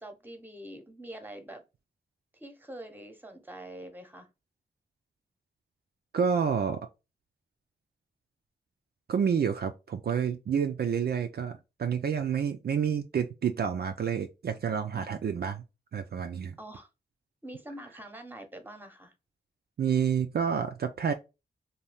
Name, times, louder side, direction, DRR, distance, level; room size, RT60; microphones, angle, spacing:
voice 1, 0.0-1.6 2.3-4.3 16.6-16.9 17.4-19.1, right 1 dB, 10° right, 0.9 m, -45 dB
voice 2, 6.1-6.9 9.1-15.6 15.9-16.6 19.8-21.1, right 7 dB, 60° right, 0.4 m, -29 dB
2.7 x 2.3 x 3.3 m
cardioid pair, 45°, 19 cm